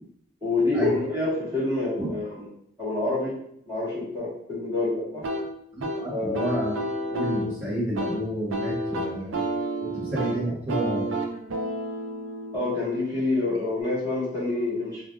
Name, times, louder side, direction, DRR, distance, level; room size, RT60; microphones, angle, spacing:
voice 1, 0.4-2.5 2.8-3.3 3.7-5.2 6.1-6.4 12.5-15.0, left 2 dB, 20° right, -10 dB, 1.3 m, -27 dB
sound 1, 5.2-13.8, right 1 dB, 90° right, 0.5 m, -31 dB
voice 2, 5.7-6.7 7.1-9.4 9.8-11.1, right 1 dB, 45° right, -10 dB, 1.0 m, -30 dB
3.2 x 2.4 x 2.4 m, 0.70 s
head